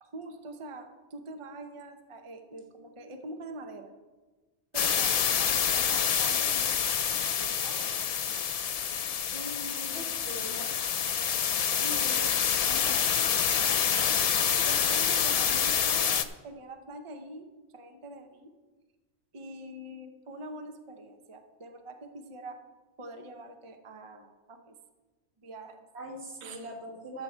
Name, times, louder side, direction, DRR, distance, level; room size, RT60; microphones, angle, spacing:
voice 1, 0.0-3.9 4.7-8.1 9.3-10.1 11.8-12.4 12.7-18.5 19.3-22.6 23.0-24.8 25.4-25.8 26.4-26.7, right 1 dB, 30° right, 6 dB, 0.7 m, -44 dB
sound 1, 4.7-16.2, left 8 dB, 55° left, 0.4 m, -27 dB
voice 2, 9.9-10.8 25.9-27.2, right 1 dB, 75° right, 1 dB, 1.8 m, -41 dB
13.0 x 7.0 x 4.4 m, 1.3 s
omnidirectional pair, 1.1 m